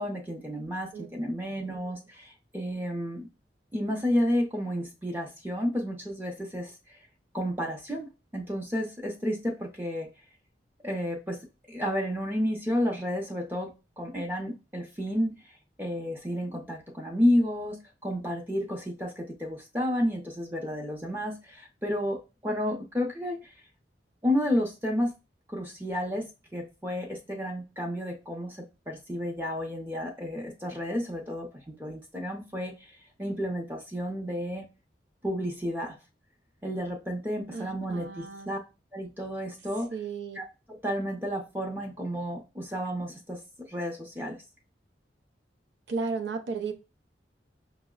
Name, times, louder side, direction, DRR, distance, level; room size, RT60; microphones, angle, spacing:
voice 1, 0.0-3.3 3.7-6.7 7.3-8.1 8.3-10.1 10.8-15.3 15.8-23.5 24.2-25.1 25.5-34.7 35.2-36.0 36.6-38.6 38.9-39.9 40.4-43.4 43.7-44.4, equal, 10° right, 0 dB, 0.6 m, -31 dB
voice 2, 1.4-1.9 37.5-38.5 39.9-40.4 45.9-46.7, right 4 dB, 90° right, 5 dB, 0.4 m, -35 dB
5.7 x 2.0 x 2.3 m, 0.28 s
head